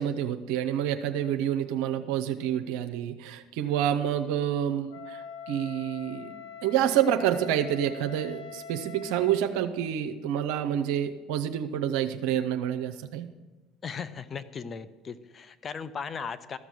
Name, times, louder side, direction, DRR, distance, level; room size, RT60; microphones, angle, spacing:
voice 1, 0.0-6.3 6.6-13.3, right 10 dB, 70° right, 6 dB, 0.6 m, -28 dB
Wind instrument woodwind instrument, 4.9-9.5, left 6 dB, 80° left, 0.9 m, -43 dB
voice 2, 13.8-16.6, left 6 dB, 35° left, 13 dB, 0.7 m, -37 dB
13.5 x 6.0 x 7.0 m, 1.2 s
hypercardioid pair, 70°, 0 cm